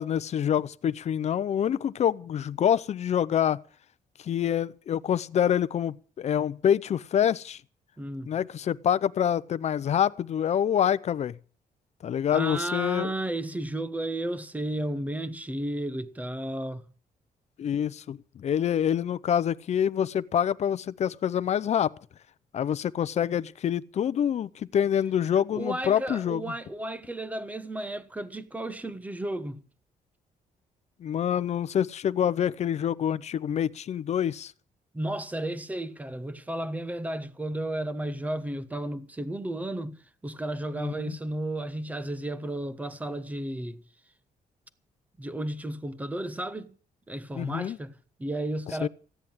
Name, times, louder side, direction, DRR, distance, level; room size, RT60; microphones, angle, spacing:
voice 1, 0.0-3.6 4.2-7.6 8.3-11.3 12.0-13.1 17.6-21.9 22.5-26.4 31.0-34.5 40.8-41.2 47.3-47.8 48.8-48.9, left 9 dB, 50° left, 0.7 m, -26 dB
voice 2, 8.0-8.3 12.3-16.9 25.5-29.6 34.9-43.8 45.2-46.8 47.1-48.9, right 1 dB, 10° right, 1.2 m, -33 dB
15.5 x 10.0 x 7.3 m
cardioid pair, 145°, 15 cm